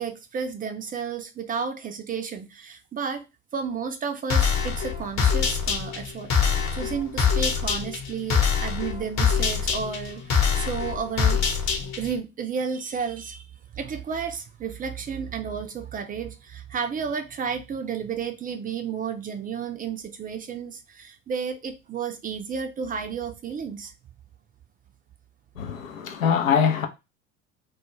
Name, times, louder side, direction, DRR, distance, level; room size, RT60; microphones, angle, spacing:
voice 1, 0.0-3.3 3.5-6.3 6.7-11.4 12.0-13.5 13.7-23.9, right 6 dB, 25° right, 0.4 m, -32 dB
sound 1, 4.3-12.2, left 6 dB, 45° left, 0.9 m, -24 dB
voice 2, 25.6-26.9, left 7 dB, 85° left, 0.6 m, -23 dB
2.3 x 2.1 x 3.1 m
hypercardioid pair, 70°, 39 cm